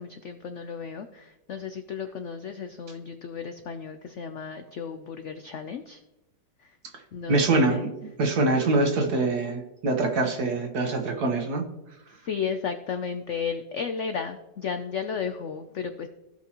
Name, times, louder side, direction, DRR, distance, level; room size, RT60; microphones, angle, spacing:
voice 1, 0.0-6.0 6.6-6.8 7.1-7.9 12.1-16.1, left 6 dB, 80° left, 7 dB, 0.6 m, -34 dB
voice 2, 7.3-7.9 8.2-11.6, right 2 dB, 60° right, 4 dB, 1.7 m, -24 dB
16.0 x 5.7 x 3.0 m, 0.96 s
omnidirectional pair, 1.9 m